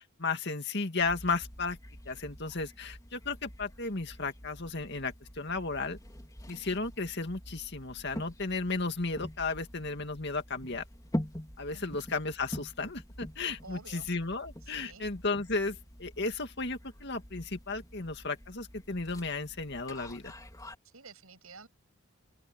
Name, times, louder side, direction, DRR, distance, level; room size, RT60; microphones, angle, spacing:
voice 1, 0.0-1.8 2.1-6.0 6.5-10.8 11.6-20.3, left 3 dB, 50° left, 2.3 m, -34 dB
sound 1, 1.0-20.7, equal, 15° left, 3.5 m, -45 dB
voice 2, 13.6-14.1 14.6-15.1 20.8-21.7, right 4 dB, 75° right, 6.7 m, -50 dB
open air
head